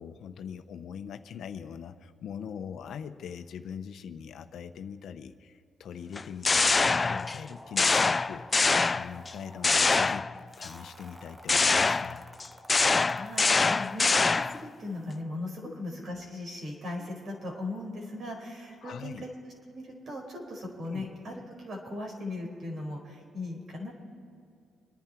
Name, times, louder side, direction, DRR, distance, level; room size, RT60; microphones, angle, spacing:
voice 1, 0.0-12.2 15.6-15.7 18.8-19.2 20.9-21.0, left 7 dB, 70° left, 9 dB, 0.9 m, -42 dB
sound 1, 6.2-7.4 7.8-9.3 9.6-10.7 11.5-14.7, left 4 dB, 30° left, 0.3 m, -24 dB
sound 2, 6.5-15.2, equal, 10° right, 1.3 m, -51 dB
voice 2, 12.8-19.3 19.7-23.9, left 2 dB, 55° right, 1 dB, 5.0 m, -38 dB
28.0 x 10.5 x 4.5 m, 2.5 s
cardioid pair, 90°, 0 cm